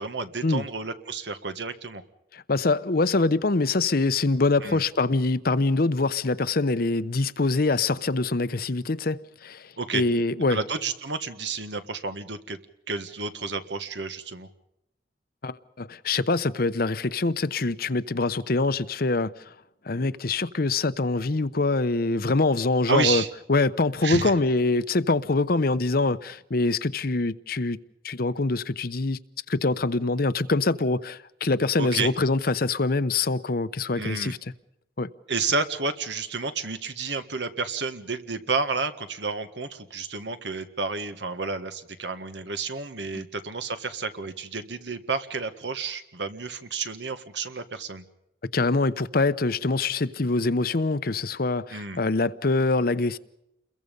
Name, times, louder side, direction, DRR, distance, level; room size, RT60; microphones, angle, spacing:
voice 1, 0.0-2.0 4.6-4.8 9.8-10.0 10.5-12.6 12.9-14.5 22.9-23.3 24.0-24.3 31.8-32.1 34.0-34.3 35.3-48.0 51.7-52.0, right 4 dB, 80° right, 1.7 m, -30 dB
voice 2, 2.3-10.6 15.4-19.5 19.8-23.2 23.5-27.8 28.0-29.2 29.5-34.4 35.0-35.1 48.5-53.2, left 3 dB, 55° left, 0.8 m, -24 dB
29.0 x 22.0 x 5.4 m
head